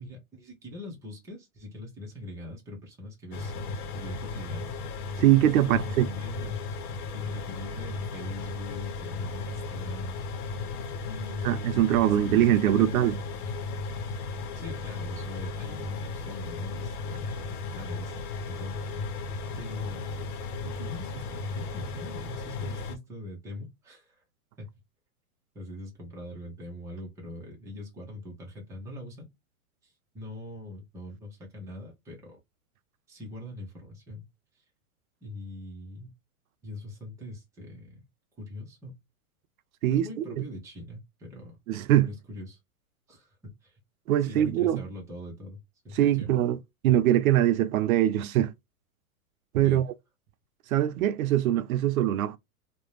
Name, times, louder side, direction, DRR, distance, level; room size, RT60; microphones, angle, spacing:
voice 1, 0.0-4.7 5.6-6.6 7.1-10.1 11.1-11.7 12.0-13.0 14.5-18.2 18.5-19.0 19.6-20.1 20.6-24.2 24.6-24.7 25.5-29.3 29.8-32.4 33.1-34.3 34.5-34.6 35.2-36.1 36.6-38.0 38.4-39.0 39.9-41.6 42.0-42.6 43.1-43.8 44.1-45.6 45.8-46.3 49.6-49.8, left 2 dB, 5° right, 0.6 m, -42 dB
sound 1, 3.3-23.0, left 4 dB, 80° left, 0.8 m, -35 dB
voice 2, 5.2-6.0 11.4-13.2 39.8-40.2 41.7-42.1 44.1-44.8 46.0-46.6 46.8-48.5 49.5-49.9 50.7-52.4, right 12 dB, 70° right, 0.5 m, -22 dB
2.5 x 2.1 x 3.1 m
hypercardioid pair, 145°, 44 cm